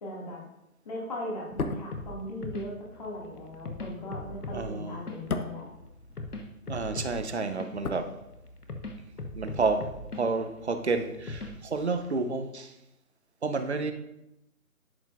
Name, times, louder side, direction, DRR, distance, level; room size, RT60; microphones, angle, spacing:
voice 1, 0.0-0.4 0.8-5.7, left 1 dB, 25° left, -3 dB, 2.2 m, -38 dB
sound 1, 1.4-6.7 7.0-8.8 9.1-9.2, left 4 dB, 70° left, 1.0 m, -38 dB
sound 2, 1.9-12.0, left 2 dB, 85° left, 1.4 m, -41 dB
voice 2, 4.5-5.0 6.7-8.1 9.3-12.7 13.4-13.9, right 3 dB, 45° right, 8 dB, 0.9 m, -30 dB
11.0 x 8.0 x 2.5 m, 0.88 s
figure-of-eight pair, 160°, 45 cm